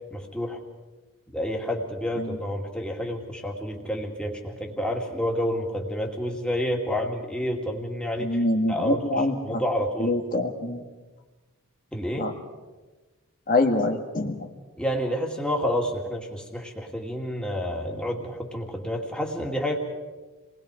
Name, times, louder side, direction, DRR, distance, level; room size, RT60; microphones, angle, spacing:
voice 1, 0.1-0.6 1.3-8.4 8.7-9.0 9.4-10.1 11.9-12.3 14.8-19.8, equal, 5° left, 0 dB, 2.5 m, -29 dB
voice 2, 8.2-9.6 10.0-10.8 12.2-12.3 13.5-14.5, left 2 dB, 40° left, 2 dB, 1.6 m, -25 dB
29.0 x 20.5 x 5.0 m, 1.2 s
head